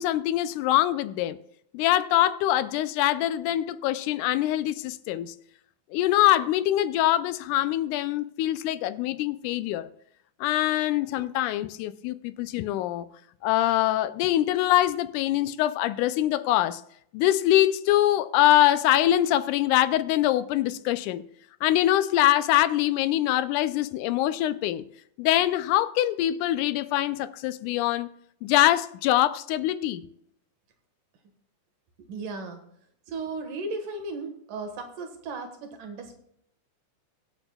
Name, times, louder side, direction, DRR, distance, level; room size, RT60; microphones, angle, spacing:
voice 1, 0.0-1.4 1.7-5.3 5.9-9.9 10.4-13.1 13.4-16.8 17.1-21.2 21.6-24.9 25.2-28.1 28.4-30.1, left 13 dB, 80° left, 2.0 m, -24 dB
voice 2, 32.0-32.7 33.1-36.1, right 3 dB, 85° right, 3.2 m, -35 dB
23.0 x 8.1 x 2.3 m
omnidirectional pair, 3.7 m